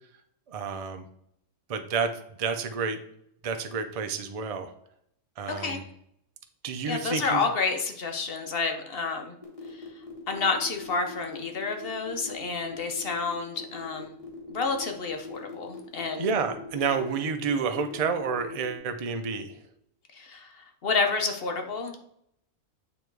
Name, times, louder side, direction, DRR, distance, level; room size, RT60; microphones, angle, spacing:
voice 1, 0.5-1.0 1.7-2.1 2.4-3.0 3.4-4.7 5.4-5.8 6.6-7.4 16.2-19.6, right 5 dB, 60° right, 7 dB, 0.3 m, -29 dB
voice 2, 6.8-9.4 10.3-14.1 14.5-16.3 20.1-22.0, left 4 dB, 50° left, 4 dB, 1.0 m, -29 dB
sound 1, 9.4-18.8, left 2 dB, 25° left, 1.6 m, -43 dB
8.8 x 3.0 x 4.6 m, 0.71 s
omnidirectional pair, 1.4 m